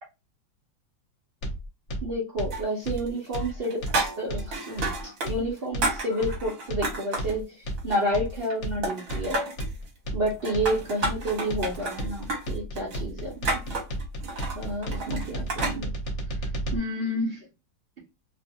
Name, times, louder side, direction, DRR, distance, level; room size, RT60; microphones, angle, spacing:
sound 1, 1.4-16.8, right 1 dB, 55° left, 0.8 m, -33 dB
voice 1, 2.0-4.9 5.3-9.4 10.1-13.8 14.6-15.9 16.7-17.4, equal, 75° right, -3 dB, 0.5 m, -30 dB
sound 2, 2.5-3.1 3.3-5.3 5.6-7.4 7.8-8.6 8.8-9.7 10.3-15.8, right 2 dB, 55° right, 1.1 m, -31 dB
3.0 x 2.5 x 2.7 m, 0.26 s
omnidirectional pair, 2.2 m